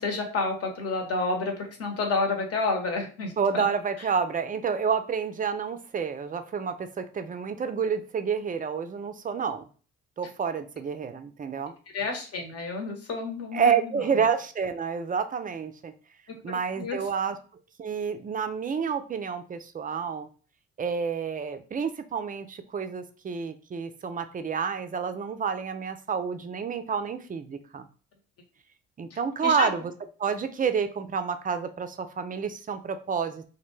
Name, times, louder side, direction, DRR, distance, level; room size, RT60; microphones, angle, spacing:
voice 1, 0.0-3.6 11.9-14.0 16.8-17.0 29.4-29.7, left 3 dB, 45° left, 3 dB, 1.0 m, -29 dB
voice 2, 3.4-9.7 10.2-11.7 13.5-15.9 16.4-17.4 17.8-20.3 20.8-27.9 29.0-29.9 30.2-33.5, right 6 dB, 25° right, 9 dB, 0.4 m, -29 dB
2.2 x 2.1 x 3.1 m, 0.38 s
hypercardioid pair, 55°, 32 cm